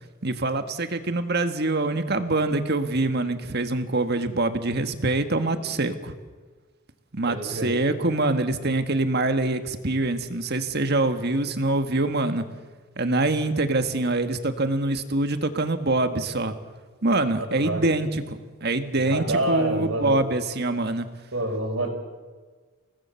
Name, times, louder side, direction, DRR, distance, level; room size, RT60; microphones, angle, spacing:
voice 1, 0.2-6.1 7.1-12.4 13.0-16.5 17.0-21.1, right 2 dB, 50° right, 8 dB, 1.7 m, -25 dB
voice 2, 7.3-7.7 17.5-17.8 19.0-20.2 21.3-21.9, right 1 dB, 80° right, 2 dB, 6.1 m, -27 dB
29.5 x 19.5 x 7.1 m, 1.4 s
head